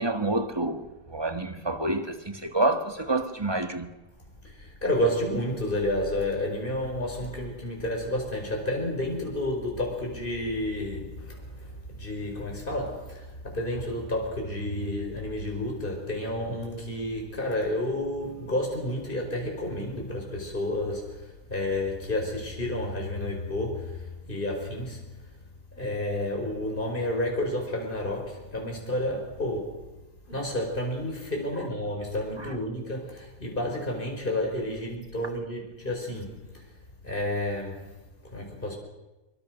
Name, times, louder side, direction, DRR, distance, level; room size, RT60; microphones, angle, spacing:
voice 1, 0.0-3.9 32.4-32.6, right 2 dB, 15° right, 1.7 m, -28 dB
voice 2, 4.4-11.7 12.0-24.0 24.3-25.0 25.8-29.8 30.3-36.6 37.0-37.8 38.3-38.8, left 1 dB, 35° left, 5.7 m, -30 dB
25.5 x 24.5 x 6.5 m
omnidirectional pair, 1.5 m